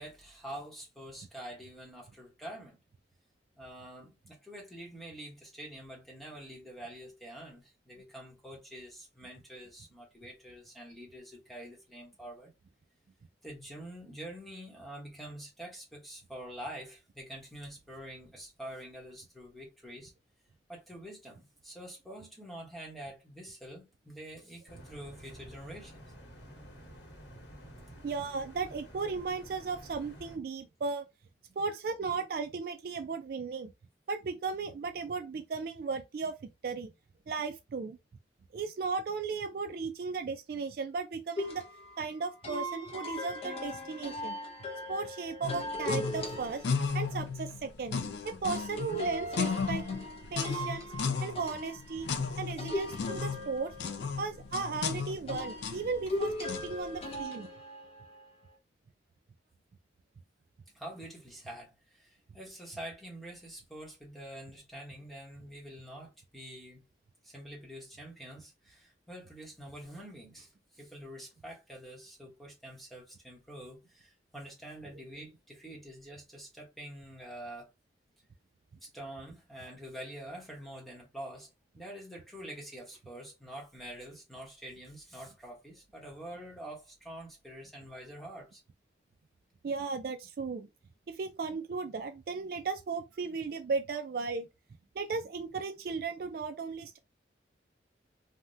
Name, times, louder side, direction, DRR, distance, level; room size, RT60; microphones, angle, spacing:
voice 1, 0.0-2.8 3.6-12.5 13.4-20.1 20.7-26.1 60.7-66.8 67.2-77.7 78.8-81.5 81.7-88.6, right 1 dB, ahead, 0.9 m, -46 dB
sound 1, 24.7-30.4, equal, 85° left, 1.1 m, -50 dB
voice 2, 28.0-31.1 31.6-33.7 34.1-36.3 36.6-36.9 37.3-38.0 38.5-41.6 42.0-44.4 44.9-46.7 46.9-48.0 48.2-49.8 50.3-50.9 51.2-52.1 52.4-53.7 54.2-57.5 89.6-90.7 91.1-94.5 95.0-97.0, right 4 dB, 50° right, 0.3 m, -36 dB
sound 2, 41.4-47.2 48.4-54.5 55.3-58.3, left 1 dB, 30° left, 0.7 m, -39 dB
sound 3, 45.4-57.1, left 5 dB, 70° left, 0.4 m, -35 dB
3.4 x 2.1 x 2.6 m
head